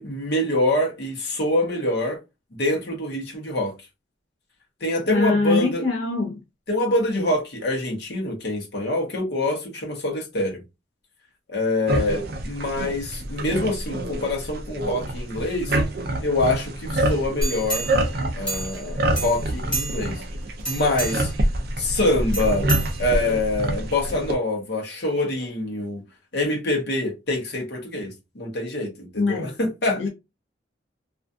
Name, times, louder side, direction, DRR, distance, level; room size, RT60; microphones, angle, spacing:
voice 1, 0.0-2.2 2.5-3.7 4.8-5.8 6.7-10.6 11.5-15.8 16.2-17.9 18.3-20.2 20.7-21.3 21.8-22.7 23.0-26.0 26.3-30.1, left 2 dB, 60° left, 0.9 m, -25 dB
voice 2, 5.1-6.4 29.1-29.5 30.0-30.1, left 3 dB, 85° left, 0.7 m, -23 dB
sound 1, 11.9-24.3, right 1 dB, 55° right, 0.5 m, -27 dB
sound 2, 17.4-18.9 19.1-20.2 20.6-21.4 22.3-23.4 23.9-24.0, right 2 dB, 5° left, 0.8 m, -30 dB
2.6 x 2.4 x 2.3 m
head